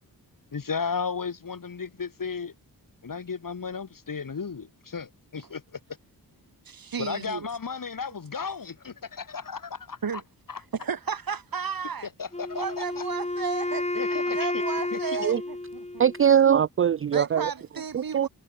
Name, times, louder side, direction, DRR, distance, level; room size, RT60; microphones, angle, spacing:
voice 1, 0.5-2.5 3.0-5.8 7.0-10.0 10.5-10.6 12.2-13.0 13.9-14.6 14.9-15.2, left 5 dB, 55° left, 5.4 m, -34 dB
voice 2, 6.7-7.5 10.0-10.2 10.7-12.1 12.5-13.9 14.3-16.0 17.1-18.3, right 6 dB, 65° right, 3.6 m, -33 dB
Wind instrument woodwind instrument, 12.3-16.4, left 2 dB, 15° left, 4.1 m, -31 dB
voice 3, 16.0-17.5 17.9-18.3, right 8 dB, 35° right, 0.4 m, -21 dB
wide cardioid pair, 90°, 38 cm